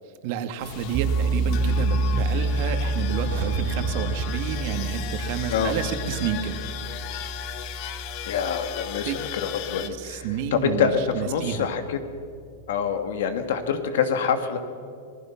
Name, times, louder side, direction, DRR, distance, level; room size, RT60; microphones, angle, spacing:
voice 1, 0.2-6.6 9.1-9.2 9.8-11.7, right 8 dB, 50° right, 7 dB, 2.1 m, -30 dB
sound 1, 0.6-9.9, left 11 dB, 45° left, 1.2 m, -37 dB
sound 2, 0.9-9.8, right 2 dB, 35° right, 1.8 m, -28 dB
sound 3, 3.0-5.9 6.1-6.2, right 8 dB, 75° right, 2.1 m, -35 dB
voice 2, 8.2-12.0 12.7-14.6, left 7 dB, 70° left, 8 dB, 2.2 m, -26 dB
27.0 x 19.0 x 6.0 m, 2.3 s
supercardioid pair, 145°, 0 cm